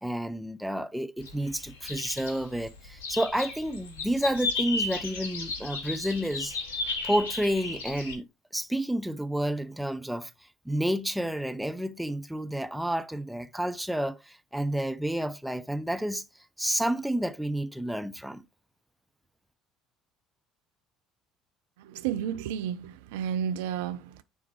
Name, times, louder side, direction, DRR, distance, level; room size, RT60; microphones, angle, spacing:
voice 1, 0.0-6.6 7.0-10.3 10.7-16.2 16.6-18.4, right 1 dB, 5° right, 0.6 m, -30 dB
sound 1, 1.2-8.1, left 3 dB, 70° left, 1.1 m, -34 dB
voice 2, 21.8-24.2, right 9 dB, 65° right, 0.4 m, -32 dB
9.3 x 3.5 x 3.1 m
figure-of-eight pair, 60°, 0 cm